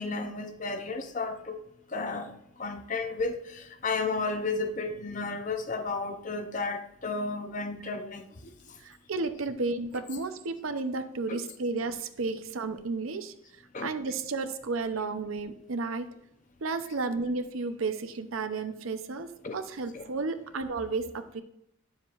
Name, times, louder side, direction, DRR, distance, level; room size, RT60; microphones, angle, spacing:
voice 1, 0.0-1.6 1.9-2.3 2.6-8.2 11.3-11.4 13.7-13.9 19.4-19.6 19.9-20.1, left 3 dB, 35° left, 0.7 m, -33 dB
voice 2, 8.8-13.3 13.8-16.1 16.6-19.3 19.5-21.4, right 3 dB, 75° right, 0.7 m, -32 dB
10.0 x 7.2 x 2.5 m
head